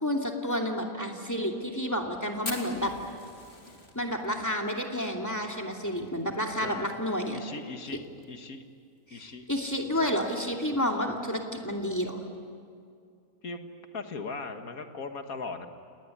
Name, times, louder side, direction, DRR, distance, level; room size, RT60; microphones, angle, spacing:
voice 1, 0.0-2.9 3.9-7.4 9.1-9.2 9.5-12.2, equal, 10° left, 1 dB, 2.5 m, -30 dB
Fire, 2.4-7.0 7.2-7.3 7.6-7.7 8.0-8.5 9.0-9.1 10.1-10.3, left 2 dB, 45° left, 3.3 m, -42 dB
voice 2, 6.6-6.9 7.3-8.6 9.1-9.5 13.4-13.6 13.9-15.7, left 4 dB, 75° left, 6 dB, 2.1 m, -39 dB
29.5 x 19.0 x 9.7 m, 2.3 s
omnidirectional pair, 1.5 m